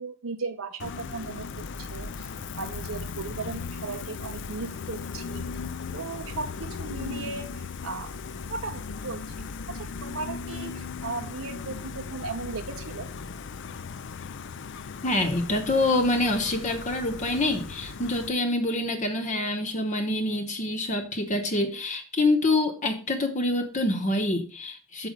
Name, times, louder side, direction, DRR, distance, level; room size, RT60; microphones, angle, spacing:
voice 1, 0.0-2.3 2.6-5.4 5.9-8.1 8.5-9.3 9.7-13.1, right 4 dB, 75° right, 5 dB, 0.8 m, -36 dB
Gull seagull, 0.8-18.3, left 5 dB, 60° left, 0.5 m, -37 dB
voice 2, 15.0-25.1, left 2 dB, 35° left, 6 dB, 0.9 m, -26 dB
6.6 x 5.8 x 5.1 m, 0.37 s
head